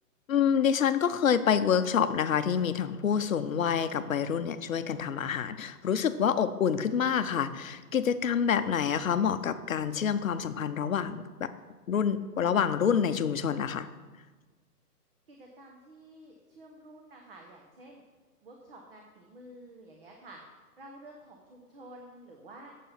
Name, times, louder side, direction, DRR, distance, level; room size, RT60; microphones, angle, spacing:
voice 1, 0.3-11.5 11.9-13.9, left 7 dB, 55° left, 11 dB, 0.7 m, -27 dB
voice 2, 15.3-18.0 18.4-22.7, right 1 dB, 35° right, 1 dB, 1.0 m, -50 dB
8.4 x 7.5 x 5.6 m, 1.3 s
hypercardioid pair, 170°, 48 cm